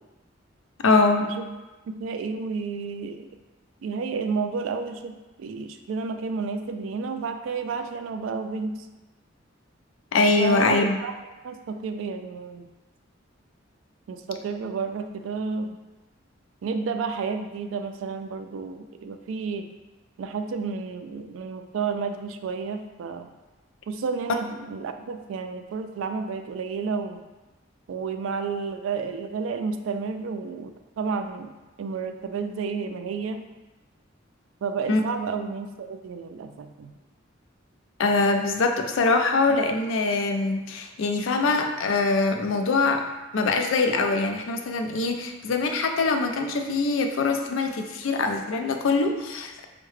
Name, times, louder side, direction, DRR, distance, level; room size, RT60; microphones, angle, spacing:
voice 1, 0.8-1.3 10.1-11.0 34.9-35.0 38.0-43.1 43.3-49.6, left 3 dB, 75° left, 5 dB, 0.4 m, -23 dB
voice 2, 1.9-3.3 3.8-8.9 10.4-11.2 11.4-12.7 14.1-15.7 16.6-19.7 20.2-23.3 23.9-27.2 27.9-31.5 31.8-33.5 34.6-36.9, right 5 dB, 75° right, 7 dB, 0.3 m, -31 dB
4.6 x 2.1 x 3.1 m, 1.1 s
head